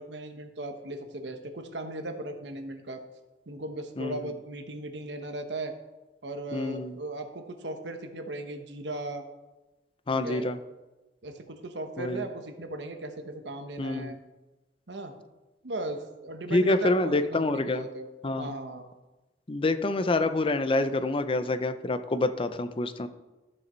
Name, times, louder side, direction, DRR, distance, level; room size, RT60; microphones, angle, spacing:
voice 1, 0.0-3.0 3.5-5.7 6.2-9.2 10.1-10.5 11.2-14.2 14.9-15.1 15.6-18.1 18.4-18.9, right 2 dB, 90° right, 6 dB, 1.2 m, -37 dB
voice 2, 6.5-7.0 10.1-10.6 12.0-12.2 13.8-14.1 16.5-17.9 18.2-18.6 19.5-23.1, left 2 dB, 30° left, 11 dB, 0.6 m, -27 dB
13.0 x 6.6 x 4.4 m, 1.1 s
head